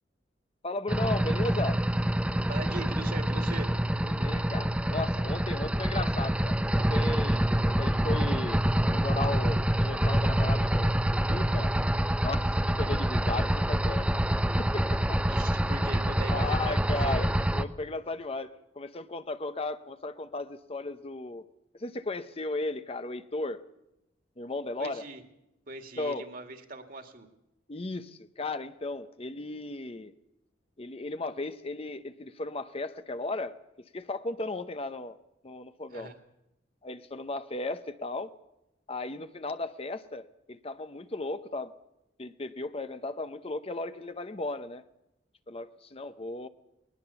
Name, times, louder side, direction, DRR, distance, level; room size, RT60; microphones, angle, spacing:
voice 1, 0.6-1.8 4.0-11.7 12.2-14.2 14.6-15.2 16.3-17.3 17.5-21.4 21.8-23.6 24.4-25.0 26.0-26.3 27.7-30.1 30.8-35.2 35.4-36.1 36.8-38.3 38.9-41.7 42.2-44.8 45.5-46.5, left 2 dB, 35° left, 11 dB, 0.8 m, -35 dB
sound 1, 0.9-17.6, right 1 dB, 5° right, 0.6 m, -26 dB
voice 2, 2.5-3.7 12.8-12.9 15.3-17.2 24.8-25.2 25.7-27.3 35.9-36.2, right 2 dB, 50° right, 5 dB, 2.2 m, -40 dB
20.5 x 19.5 x 7.0 m, 0.88 s
head